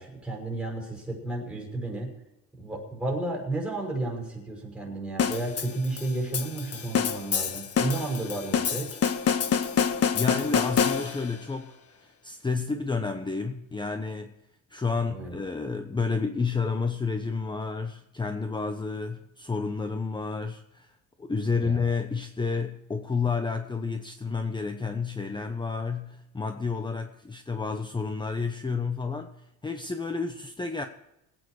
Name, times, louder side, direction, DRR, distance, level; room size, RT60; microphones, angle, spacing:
voice 1, 0.0-2.1 2.6-9.0 15.1-15.4 21.5-21.8, right 2 dB, 5° right, 6.0 m, -32 dB
sound 1, 5.2-11.4, left 7 dB, 40° left, 1.5 m, -27 dB
voice 2, 10.1-14.3 14.7-29.3 29.6-30.8, left 4 dB, 15° left, 0.9 m, -30 dB
21.5 x 9.1 x 4.8 m
cardioid pair, 135°, 36 cm